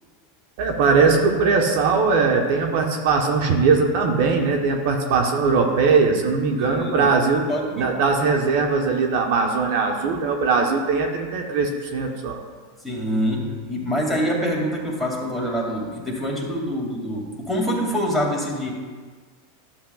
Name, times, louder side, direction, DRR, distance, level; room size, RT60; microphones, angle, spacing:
voice 1, 0.6-7.4 7.8-12.4, right 4 dB, 65° right, 2 dB, 1.0 m, -20 dB
voice 2, 6.6-7.1 7.5-7.9 12.8-18.7, equal, ahead, -3 dB, 2.2 m, -25 dB
12.0 x 7.2 x 2.4 m, 1.5 s
hypercardioid pair, 100°, 0 cm